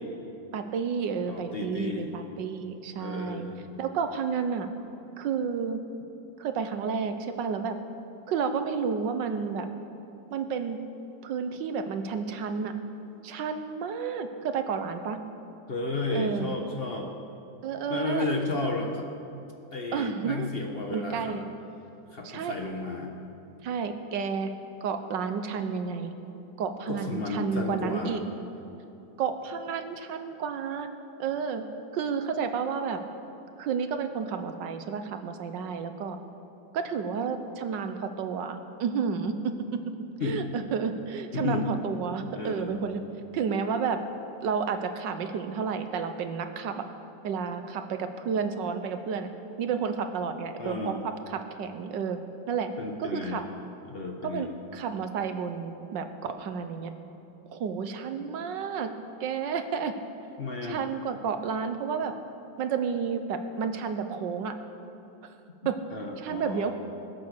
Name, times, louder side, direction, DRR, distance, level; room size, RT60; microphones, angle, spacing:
voice 1, 0.5-3.4 3.8-4.7 5.2-5.8 6.4-7.8 8.3-9.7 10.3-10.8 11.2-12.7 13.2-15.2 16.1-16.5 17.6-18.2 19.9-20.5 20.9-21.4 22.2-22.5 23.6-24.5 24.8-26.1 26.6-28.2 29.2-30.9 31.2-31.6 31.9-33.0 33.6-36.2 36.7-39.9 40.2-43.0 43.3-44.0 44.4-46.9 47.2-49.3 49.6-52.2 52.5-52.7 53.0-53.4 54.2-56.9 57.5-58.9 59.2-59.9 60.6-62.1 62.6-64.5 65.2-65.3 65.6-65.8 66.2-66.7, right 6 dB, 80° right, 8 dB, 1.5 m, -31 dB
voice 2, 1.3-2.1 3.0-3.7 15.7-17.1 17.9-19.1 19.7-21.4 22.1-23.1 26.9-28.2 40.2-40.4 41.3-41.7 42.3-42.7 50.6-51.0 52.8-53.4 53.9-54.5 60.4-60.8 65.9-66.7, left 3 dB, 35° left, 2 dB, 1.2 m, -33 dB
20.5 x 8.4 x 6.7 m, 2.9 s
omnidirectional pair, 2.0 m